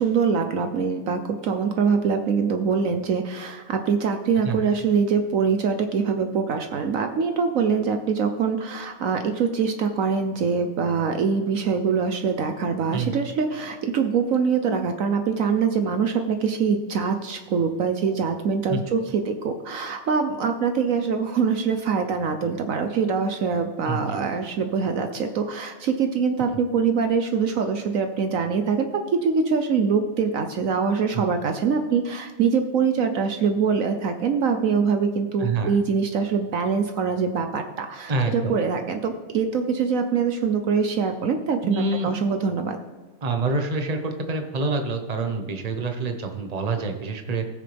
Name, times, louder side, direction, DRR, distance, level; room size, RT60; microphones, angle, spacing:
voice 1, 0.0-28.9 29.2-42.8, right 5 dB, 65° right, 6 dB, 1.1 m, -24 dB
voice 2, 23.9-24.2 35.4-35.8 38.1-38.6 41.6-42.1 43.2-47.4, right 3 dB, 30° right, 4 dB, 1.1 m, -26 dB
19.0 x 6.6 x 3.5 m, 1.3 s
omnidirectional pair, 1.6 m